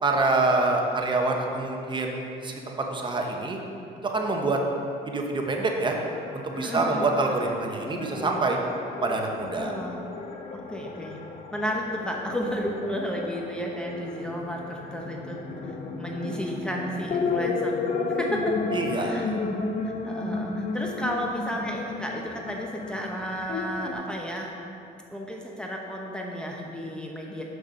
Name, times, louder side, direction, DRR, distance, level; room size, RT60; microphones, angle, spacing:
voice 1, 0.0-3.6 4.0-4.6 5.1-6.0 6.3-8.6 9.0-9.7 18.7-19.3, right 3 dB, 30° right, 1 dB, 1.0 m, -26 dB
sound 1, 5.9-23.9, left 4 dB, 40° left, 0.8 m, -33 dB
voice 2, 6.6-7.1 9.5-10.0 10.5-11.2 11.5-15.4 15.6-17.8 18.1-18.6 19.0-19.3 19.8-24.5 25.1-27.4, equal, 5° left, -1 dB, 0.9 m, -32 dB
6.8 x 6.6 x 5.5 m, 2.5 s
cardioid pair, 110°, 17 cm